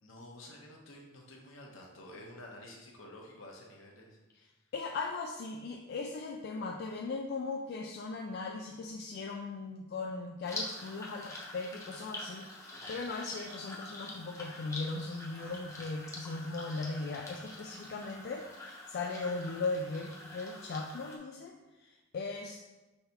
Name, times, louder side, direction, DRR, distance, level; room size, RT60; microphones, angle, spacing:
voice 1, 0.0-4.2 12.7-12.9 15.4-15.7, left 1 dB, 75° left, -1 dB, 0.9 m, -51 dB
voice 2, 4.7-22.6, left 3 dB, 55° left, 1 dB, 0.3 m, -38 dB
sound 1, 10.4-21.2, left 2 dB, 15° left, 0.7 m, -45 dB
5.7 x 3.3 x 2.9 m, 1.1 s
head